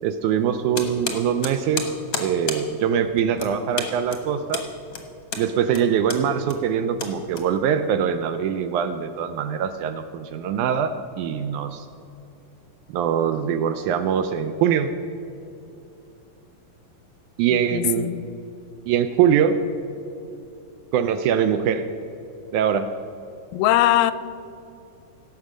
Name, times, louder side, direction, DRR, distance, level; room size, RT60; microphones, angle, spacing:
voice 1, 0.0-4.6 5.4-11.9 12.9-14.9 17.4-18.1 18.9-19.6 20.9-21.9 22.5-22.9, right 8 dB, 80° right, 9 dB, 1.8 m, -23 dB
sound 1, 0.7-7.9, left 5 dB, 55° left, 1.1 m, -33 dB
voice 2, 17.7-18.2 23.5-24.1, left 14 dB, 90° left, 15 dB, 2.2 m, -20 dB
17.0 x 7.4 x 6.2 m, 2.8 s
omnidirectional pair, 3.9 m